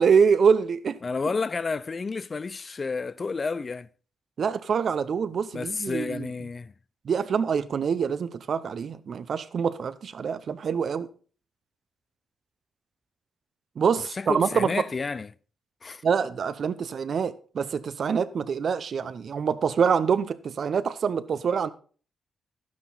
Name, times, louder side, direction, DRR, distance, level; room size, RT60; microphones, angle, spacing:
voice 1, 0.0-1.0 4.4-6.3 7.0-11.1 13.8-14.7 16.0-21.7, right 6 dB, 60° right, 0.8 m, -25 dB
voice 2, 1.0-3.9 5.5-6.7 14.0-15.3 15.8-16.0, left 4 dB, 45° left, 0.5 m, -31 dB
11.5 x 9.6 x 4.0 m
hypercardioid pair, 45°, 0 cm